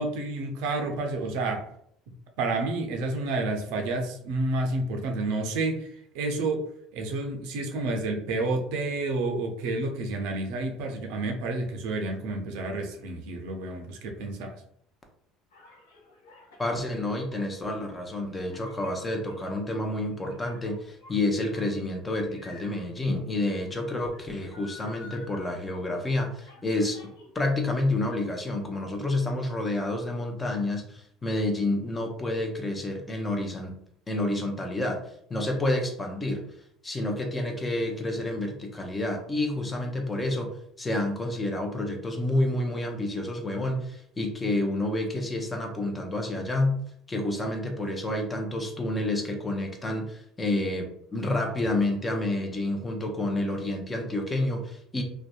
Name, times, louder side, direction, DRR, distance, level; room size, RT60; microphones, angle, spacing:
voice 1, 0.0-1.7 2.4-6.7 6.9-14.6, right 2 dB, 70° right, 4 dB, 0.4 m, -30 dB
sound 1, 15.5-27.7 28.0-28.8, left 3 dB, 80° left, 0.6 m, -52 dB
voice 2, 16.6-27.0 27.3-33.7 34.1-35.0 35.3-36.4 36.8-40.5 40.8-46.8 47.1-55.0, left 2 dB, 20° left, 3 dB, 0.6 m, -29 dB
2.6 x 2.1 x 2.3 m, 0.69 s
hypercardioid pair, 65°, 0 cm